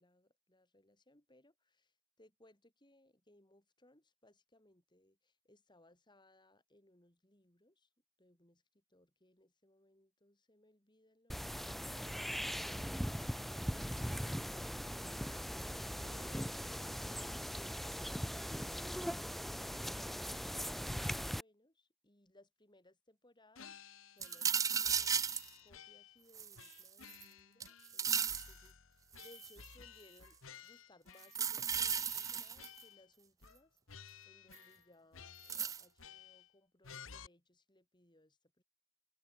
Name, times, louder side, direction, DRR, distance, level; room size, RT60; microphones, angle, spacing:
voice 1, 0.0-7.9 8.2-11.6 12.2-23.8 24.1-25.2 25.6-33.8 34.3-38.6, left 1 dB, 20° left, 5.4 m, -67 dB
sound 1, 11.3-21.4, equal, ahead, 1.0 m, -40 dB
sound 2, 23.6-24.6 24.8-26.2 26.6-28.0 28.3-31.4 31.7-33.1 33.4-33.6 33.9-34.9 35.1-36.5 36.8-37.3, left 7 dB, 85° left, 1.5 m, -55 dB
sound 3, 24.2-25.5 26.3-27.2 27.6-28.5 29.2-29.6 31.2-32.8 34.5-34.6 35.5-35.8, right 7 dB, 15° right, 0.3 m, -35 dB
head